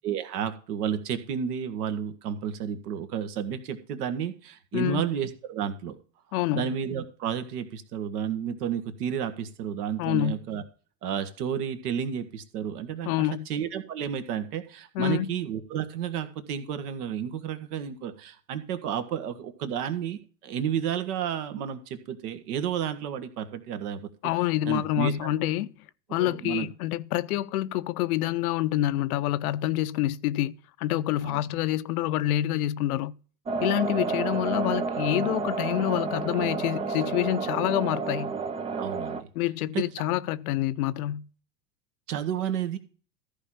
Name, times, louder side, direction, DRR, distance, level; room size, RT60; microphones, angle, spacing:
voice 1, 0.0-6.0 6.5-10.6 11.0-24.1 24.7-25.3 26.2-26.7 31.2-31.4 38.8-39.3 39.7-39.8 42.1-42.8, right 8 dB, 65° right, 1.7 m, -31 dB
voice 2, 4.7-5.0 6.3-6.7 10.0-10.4 13.1-13.5 14.9-15.3 24.2-25.7 26.1-30.5 30.8-33.1 33.6-38.4 39.4-41.3, left 14 dB, 60° left, 0.7 m, -27 dB
sound 1, 33.5-39.2, right 4 dB, 15° right, 0.4 m, -30 dB
14.0 x 5.1 x 5.8 m
hypercardioid pair, 100°, 49 cm